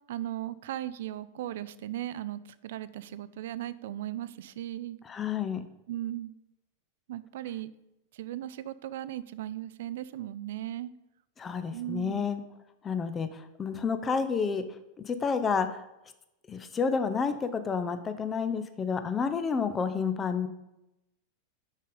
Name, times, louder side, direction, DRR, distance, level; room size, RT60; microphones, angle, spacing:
voice 1, 0.1-5.0 5.9-6.3 7.1-7.7 8.1-10.9 11.7-12.3, right 13 dB, 55° right, 16 dB, 0.3 m, -37 dB
voice 2, 5.1-5.6 11.4-12.4 12.8-14.6 15.0-15.8 16.5-20.5, left 5 dB, 20° left, 10 dB, 0.6 m, -30 dB
6.4 x 5.4 x 5.1 m, 0.90 s
figure-of-eight pair, 90°, 0 cm